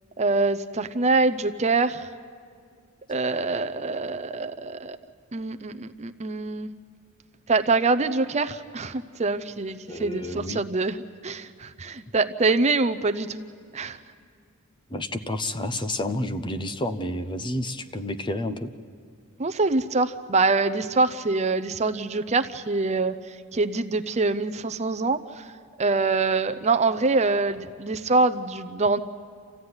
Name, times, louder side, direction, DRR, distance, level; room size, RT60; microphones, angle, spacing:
voice 1, 0.2-2.1 3.1-5.0 5.3-6.7 7.5-11.0 11.2-13.4 13.7-14.0 19.4-23.1 23.5-25.4 25.8-29.0, right 3 dB, 30° right, 9 dB, 0.6 m, -24 dB
voice 2, 9.9-10.6 14.9-18.7, left 1 dB, 20° left, 9 dB, 0.8 m, -30 dB
27.5 x 15.5 x 9.6 m, 2.2 s
head